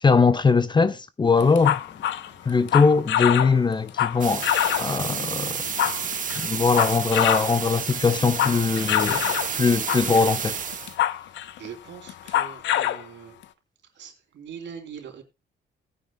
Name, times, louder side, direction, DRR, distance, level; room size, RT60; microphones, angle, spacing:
voice 1, 0.0-1.8 2.4-4.5 4.8-5.6 6.4-10.5, left 4 dB, 25° left, 0.6 m, -21 dB
sound 1, 1.4-5.0 5.5-7.5 7.9-9.5 9.9-10.3 10.7-11.7 12.1-13.0, left 12 dB, 80° left, 0.6 m, -25 dB
sound 2, 1.6-7.3, left 7 dB, 55° left, 1.7 m, -46 dB
sound 3, 4.2-11.0, right 7 dB, 45° right, 1.0 m, -30 dB
voice 2, 11.6-13.4 14.0-15.2, right 7 dB, 80° right, 3.2 m, -42 dB
18.5 x 9.3 x 2.3 m
cardioid pair, 120°, 19 cm